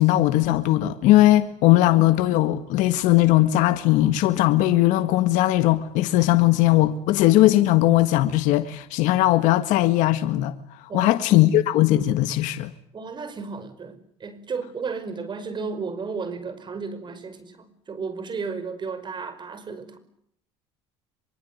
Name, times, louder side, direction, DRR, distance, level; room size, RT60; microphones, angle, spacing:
voice 1, 0.0-10.5 10.9-12.7, left 15 dB, 70° left, 1.7 m, -19 dB
voice 2, 10.9-11.5 12.9-20.0, right 5 dB, 35° right, 5.3 m, -33 dB
25.0 x 23.5 x 9.6 m
supercardioid pair, 80°, 13 cm